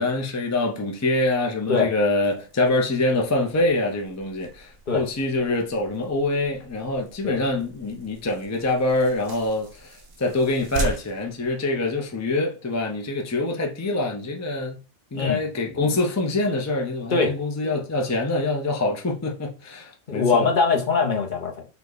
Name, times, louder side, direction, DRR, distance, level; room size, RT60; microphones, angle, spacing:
voice 1, 0.0-14.8 15.1-20.5, left 2 dB, 20° left, 0.4 m, -25 dB
sound 1, 2.2-12.3, right 2 dB, 60° right, 1.1 m, -39 dB
voice 2, 20.1-21.7, left 4 dB, 45° left, 0.9 m, -22 dB
5.7 x 2.3 x 3.9 m
omnidirectional pair, 1.3 m